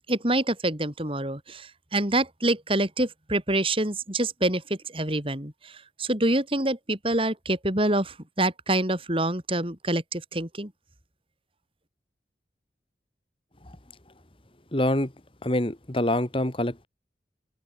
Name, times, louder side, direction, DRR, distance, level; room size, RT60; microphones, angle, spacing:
voice 1, 0.1-5.7 6.0-10.7, right 1 dB, 30° right, 4.0 m, -26 dB
voice 2, 14.7-15.1 15.4-16.9, left 1 dB, 30° left, 2.0 m, -25 dB
open air
head